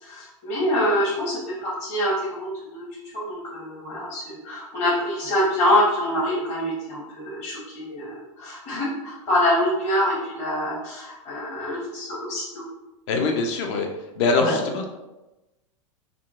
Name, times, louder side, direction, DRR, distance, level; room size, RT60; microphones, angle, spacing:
voice 1, 0.0-2.9 3.1-12.6 14.4-14.6, left 1 dB, 45° left, -8 dB, 1.1 m, -25 dB
voice 2, 13.1-13.9 14.2-14.9, left 3 dB, 60° left, 3 dB, 0.6 m, -23 dB
3.7 x 2.2 x 2.4 m, 1.0 s
hypercardioid pair, 100°, 17 cm